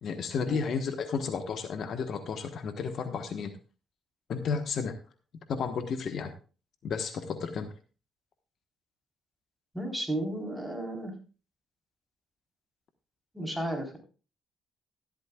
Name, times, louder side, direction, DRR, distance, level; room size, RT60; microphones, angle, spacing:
voice 1, 0.0-3.5 4.3-4.9 5.5-6.3 6.8-7.7, left 5 dB, 60° left, 7 dB, 1.2 m, -32 dB
voice 2, 9.7-11.2 13.3-14.0, right 1 dB, ahead, 1 dB, 3.9 m, -33 dB
13.5 x 12.0 x 2.4 m, 0.35 s
cardioid pair, 90°, 0 cm